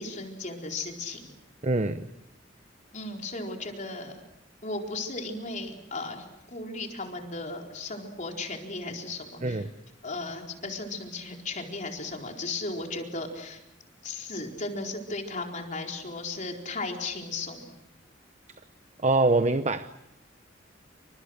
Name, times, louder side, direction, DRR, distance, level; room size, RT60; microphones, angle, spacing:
voice 1, 0.0-1.3 2.9-4.1 4.6-9.7 10.0-13.6 14.0-17.7, left 3 dB, 40° left, 2 dB, 4.3 m, -36 dB
voice 2, 1.6-2.1 9.4-9.7 19.0-19.9, right 2 dB, 40° right, 10 dB, 0.9 m, -24 dB
29.0 x 26.5 x 6.6 m, 0.84 s
head